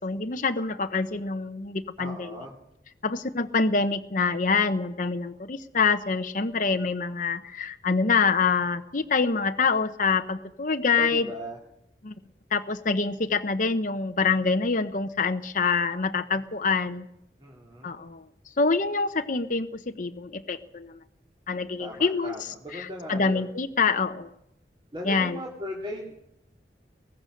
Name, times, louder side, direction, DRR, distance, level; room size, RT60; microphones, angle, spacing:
voice 1, 0.0-2.4 3.0-11.3 12.0-12.1 12.5-17.1 17.8-18.2 18.6-21.0 21.5-24.3 25.0-25.4, left 4 dB, 50° left, 7 dB, 0.8 m, -26 dB
voice 2, 2.0-2.5 10.9-11.6 17.4-17.9 21.8-23.4 24.9-26.1, equal, 30° right, -3 dB, 3.1 m, -38 dB
22.0 x 18.5 x 6.5 m, 0.85 s
head